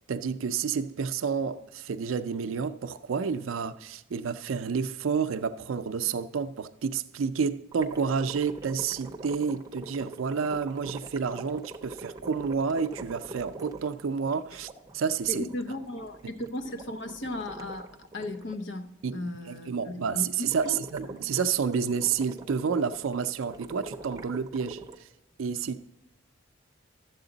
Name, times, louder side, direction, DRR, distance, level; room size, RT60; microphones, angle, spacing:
voice 1, 0.1-15.5 19.0-25.1 25.4-25.9, right 6 dB, 80° right, 0.4 m, -30 dB
sound 1, 7.7-18.6 20.5-25.0, right 2 dB, 20° right, 0.6 m, -44 dB
voice 2, 15.3-20.3 20.6-20.8, left 1 dB, 60° left, 0.7 m, -36 dB
12.5 x 7.9 x 3.9 m
head